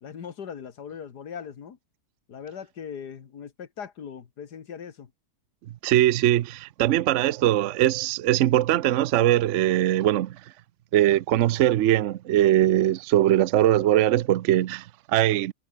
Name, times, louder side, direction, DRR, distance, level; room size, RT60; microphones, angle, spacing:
voice 1, 0.0-1.8 2.3-5.1, left 7 dB, 90° left, 2.2 m, -39 dB
voice 2, 5.8-10.4 10.9-15.5, right 13 dB, 65° right, 0.8 m, -21 dB
omnidirectional pair, 1.7 m